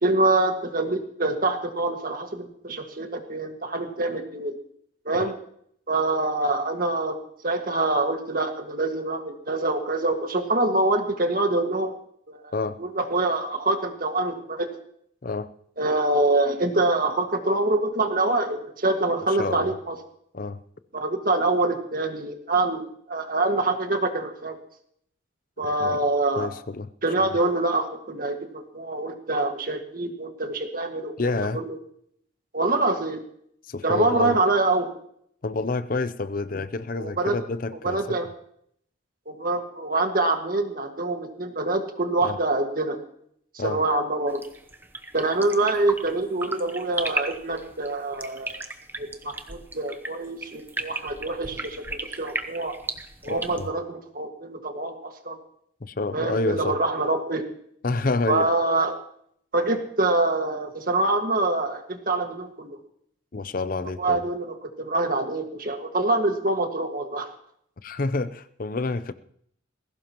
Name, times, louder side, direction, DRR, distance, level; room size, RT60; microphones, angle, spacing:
voice 1, 0.0-4.5 5.0-5.4 5.9-12.0 12.3-12.5 12.8-14.7 15.8-20.0 20.9-24.6 25.6-26.5 27.0-31.8 32.5-33.2 33.8-34.9 37.0-37.3 37.8-38.3 39.3-43.0 43.6-44.4 45.1-48.6 49.0-52.7 53.2-55.4 56.1-57.4 58.3-59.0 59.5-62.7 63.8-67.3, right 2 dB, 45° right, 5 dB, 1.8 m, -25 dB
voice 2, 19.3-19.7 20.3-20.6 25.8-26.1 26.4-26.9 31.2-31.6 33.7-34.4 35.4-38.2 42.2-42.4 43.6-43.8 53.3-53.7 55.8-56.8 57.8-58.5 63.3-64.2 67.8-69.1, left 3 dB, 45° left, 13 dB, 0.6 m, -28 dB
sound 1, 44.3-53.7, right 2 dB, 10° right, 0.8 m, -35 dB
20.5 x 16.5 x 3.0 m, 0.67 s
head